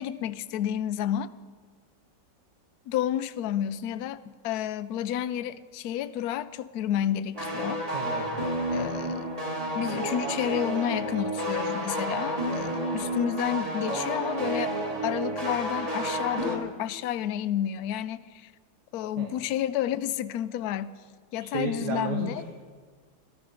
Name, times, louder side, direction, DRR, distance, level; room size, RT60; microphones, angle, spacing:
voice 1, 0.0-1.3 2.9-7.8 8.7-9.3 9.7-14.8 15.0-18.5 18.9-20.9 21.3-22.4, left 10 dB, 70° left, 15 dB, 0.9 m, -30 dB
sound 1, 7.3-16.6, right 1 dB, 20° right, 2.0 m, -30 dB
voice 2, 7.9-8.3 19.2-19.3 21.5-22.4, right 4 dB, 65° right, 2 dB, 1.8 m, -32 dB
14.5 x 13.5 x 5.1 m, 1.5 s
omnidirectional pair, 2.0 m